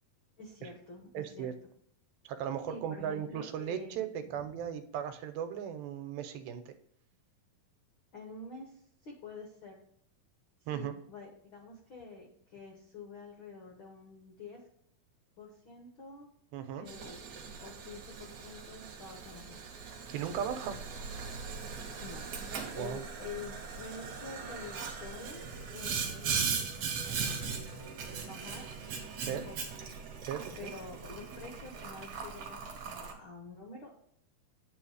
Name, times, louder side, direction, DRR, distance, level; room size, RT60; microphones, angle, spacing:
voice 1, 0.4-1.5 2.7-4.4 8.1-9.8 10.7-14.6 15.4-16.3 16.8-17.3 17.6-19.6 22.0-25.4 25.7-26.7 27.0-27.8 28.2-28.7 29.3-29.6 30.6-34.0, left 4 dB, 85° left, 0 dB, 1.1 m, -48 dB
voice 2, 1.1-1.5 2.3-6.7 10.7-10.9 16.5-16.9 20.1-20.8 22.8-23.0 29.3-29.5 30.3-30.7, right 9 dB, 90° right, 9 dB, 2.6 m, -37 dB
Boiling, 16.9-33.1, right 5 dB, 60° right, 2.1 m, -39 dB
9.5 x 3.2 x 6.3 m, 0.69 s
omnidirectional pair, 4.2 m